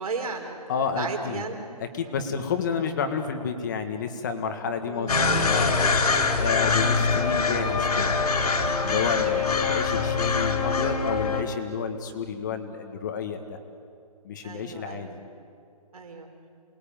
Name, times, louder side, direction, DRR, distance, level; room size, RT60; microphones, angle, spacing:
voice 1, 0.0-1.6 2.0-2.3 4.8-5.4 6.6-6.8 9.2-9.5 14.4-15.1 15.9-16.3, right 4 dB, 65° right, 4 dB, 4.6 m, -35 dB
voice 2, 0.7-1.4 1.8-5.8 6.4-8.2 8.8-13.6 14.2-15.2, left 6 dB, 30° left, 6 dB, 1.6 m, -30 dB
sound 1, 5.1-11.4, left 4 dB, 85° left, 3.7 m, -24 dB
28.5 x 20.5 x 9.0 m, 2.4 s
hypercardioid pair, 170°, 20 cm